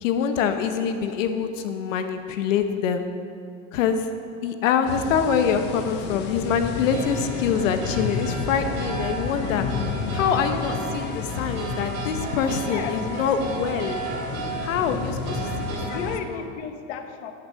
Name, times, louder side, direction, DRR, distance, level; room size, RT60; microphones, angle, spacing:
voice 1, 0.0-3.1 3.7-4.1 4.4-9.6 10.1-14.0 14.6-16.0 16.3-16.4, left 7 dB, 85° left, 7 dB, 1.1 m, -25 dB
sound 1, 4.8-16.2, left 5 dB, 30° left, 0.6 m, -32 dB
sound 2, 6.9-16.2, right 4 dB, 45° right, 2.4 m, -34 dB
voice 2, 12.6-12.9 15.7-17.3, left 7 dB, 65° left, 7 dB, 1.1 m, -34 dB
10.0 x 8.9 x 5.7 m, 2.4 s
supercardioid pair, 165°, 37 cm